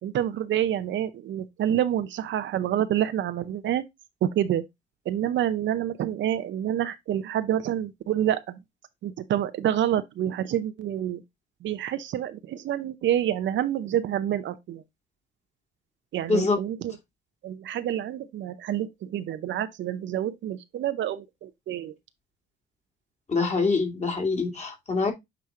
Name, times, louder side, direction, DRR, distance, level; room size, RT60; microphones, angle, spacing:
voice 1, 0.0-3.8 4.2-4.6 5.1-8.6 9.0-11.2 11.6-14.8 16.1-16.9 17.4-21.9, right 11 dB, 70° right, 0.7 m, -28 dB
voice 2, 16.3-16.6 23.3-25.1, left 4 dB, 35° left, 2.4 m, -25 dB
8.3 x 3.1 x 3.6 m
cardioid pair, 90°, 20 cm